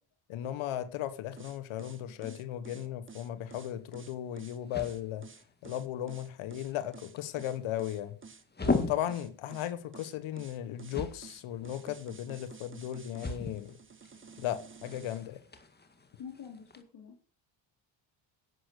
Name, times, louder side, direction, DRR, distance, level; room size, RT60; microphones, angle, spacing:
voice 1, 0.3-5.2 5.6-8.2 8.6-13.8 14.4-15.4, left 12 dB, 75° left, 1.3 m, -36 dB
sound 1, 1.4-15.2, right 5 dB, 25° right, 1.6 m, -51 dB
voice 2, 2.0-2.9 16.2-17.2, left 7 dB, 55° left, 2.9 m, -48 dB
sound 2, 3.4-16.8, left 3 dB, 20° left, 2.0 m, -40 dB
11.5 x 8.2 x 6.5 m
cardioid pair, 90°, 49 cm